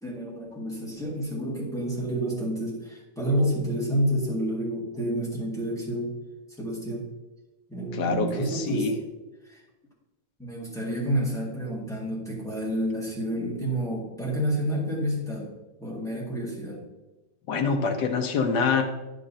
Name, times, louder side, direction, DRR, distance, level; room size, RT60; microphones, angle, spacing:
voice 1, 0.0-6.2 6.6-7.1 7.7-8.9 9.4-9.6 10.4-15.5 15.8-16.8, right 1 dB, ahead, -4 dB, 1.7 m, -29 dB
voice 2, 8.0-8.9 17.5-18.8, left 5 dB, 65° left, 5 dB, 1.4 m, -25 dB
10.5 x 6.4 x 2.8 m, 1.1 s
omnidirectional pair, 2.1 m